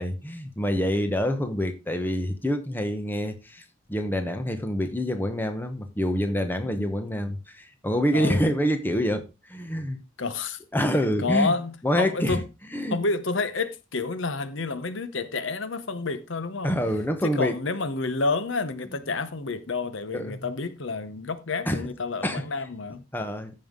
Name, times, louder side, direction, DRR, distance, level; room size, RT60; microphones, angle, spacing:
voice 1, 0.0-10.0 10.7-11.5 11.8-12.4 12.7-13.0 16.6-17.6 20.1-20.5 21.7-21.8 22.2-22.5 23.1-23.6, equal, 10° left, 1.0 m, -26 dB
voice 2, 8.1-8.4 10.2-10.6 11.2-12.4 12.9-16.8 17.2-23.1, left 3 dB, 65° left, 0.8 m, -29 dB
14.5 x 5.6 x 3.7 m
head